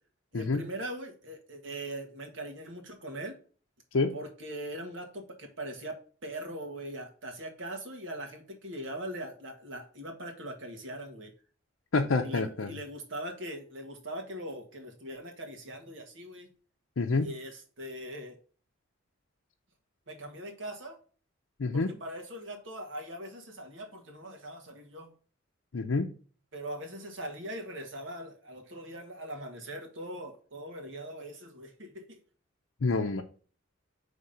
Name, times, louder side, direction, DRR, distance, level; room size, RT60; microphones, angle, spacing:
voice 1, 0.3-3.3 4.1-11.3 12.2-16.5 17.2-18.3 20.1-21.0 21.7-25.1 26.5-32.2, right 1 dB, 65° right, 1.6 m, -41 dB
voice 2, 11.9-12.7 17.0-17.3 21.6-21.9 25.7-26.1 32.8-33.2, left 3 dB, 75° left, 0.6 m, -27 dB
5.2 x 3.5 x 5.6 m
head